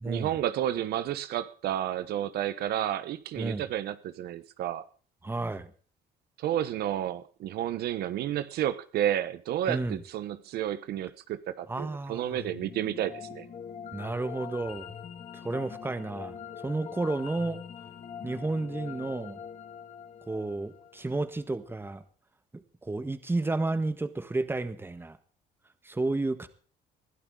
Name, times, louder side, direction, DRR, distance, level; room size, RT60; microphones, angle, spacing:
voice 1, 0.1-4.8 6.4-13.5, right 11 dB, 70° right, 1.0 m, -31 dB
voice 2, 5.2-5.7 9.7-10.0 11.7-12.4 13.9-14.9 15.4-16.3 16.6-17.6 18.2-19.4 20.3-22.0 22.5-25.2 25.8-26.5, right 2 dB, 15° right, 1.5 m, -31 dB
sound 1, 12.4-21.5, left 8 dB, 45° left, 1.9 m, -43 dB
21.0 x 12.0 x 3.8 m
cardioid pair, 110°, 17 cm